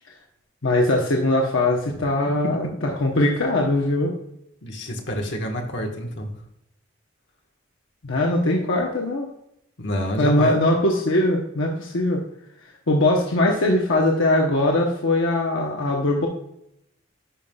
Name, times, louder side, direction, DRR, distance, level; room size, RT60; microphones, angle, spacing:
voice 1, 0.6-2.7 3.0-4.1 8.0-9.3 10.2-12.2 12.9-16.3, left 1 dB, 80° left, 0 dB, 0.9 m, -21 dB
voice 2, 4.6-6.3 9.8-10.6, equal, 65° left, 2 dB, 1.4 m, -27 dB
10.0 x 5.5 x 2.3 m, 0.79 s
head